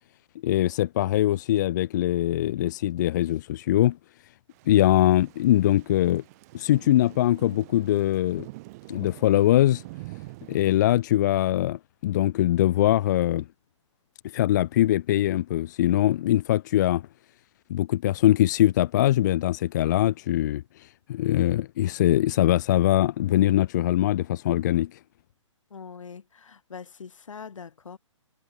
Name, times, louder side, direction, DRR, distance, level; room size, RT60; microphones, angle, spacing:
voice 1, 0.4-4.0 4.7-6.2 6.5-8.5 8.9-9.8 10.5-13.5 14.3-17.0 17.7-20.6 21.1-24.9, left 13 dB, 35° left, 0.6 m, -22 dB
Thunder / Rain, 4.5-10.8, right 21 dB, 30° right, 3.1 m, -45 dB
voice 2, 25.7-28.0, left 6 dB, 80° left, 3.1 m, -42 dB
hypercardioid pair, 155°, 16 cm